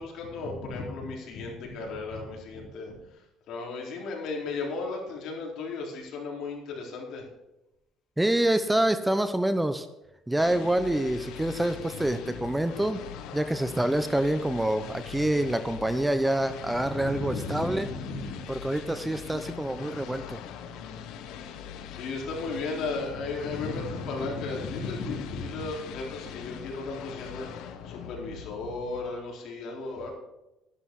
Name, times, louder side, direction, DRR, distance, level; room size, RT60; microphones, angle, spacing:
voice 1, 0.0-3.0 3.5-7.2 16.7-18.4 21.9-30.1, left 3 dB, 65° left, -1 dB, 4.0 m, -35 dB
voice 2, 8.2-9.9 10.3-13.0 13.3-17.9 18.5-20.4, right 1 dB, 5° right, 10 dB, 0.6 m, -26 dB
sound 1, 10.4-29.4, left 8 dB, 80° left, 1.2 m, -42 dB
12.0 x 11.5 x 4.7 m, 0.92 s
cardioid pair, 135°, 0 cm